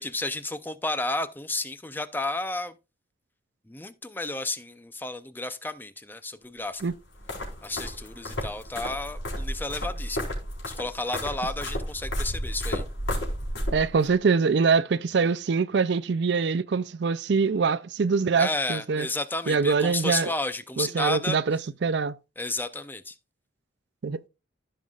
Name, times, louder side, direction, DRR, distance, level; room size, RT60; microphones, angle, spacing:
voice 1, 0.0-2.7 3.7-6.8 7.6-10.3 10.7-12.8 18.4-21.4 22.4-23.2, left 2 dB, 10° left, 0.5 m, -32 dB
sound 1, 6.8-14.1, equal, 75° left, 4.7 m, -32 dB
voice 2, 13.7-19.1 19.5-20.3 20.8-22.2 24.0-24.2, right 5 dB, 65° right, 0.4 m, -24 dB
15.5 x 5.6 x 2.4 m
head